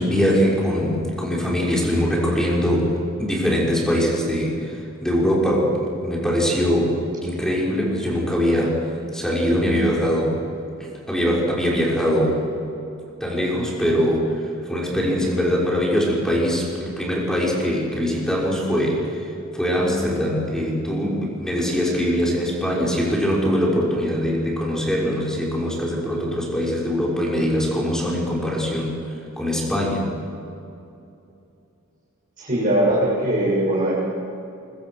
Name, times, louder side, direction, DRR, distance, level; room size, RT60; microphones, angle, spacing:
voice 1, 0.0-8.8 9.1-10.4 11.1-12.4 13.2-14.4 14.7-29.0 29.4-30.1, equal, 5° left, -4 dB, 6.0 m, -22 dB
voice 2, 32.4-33.9, right 1 dB, 40° right, -7 dB, 7.4 m, -20 dB
25.0 x 23.0 x 6.4 m, 2.7 s
head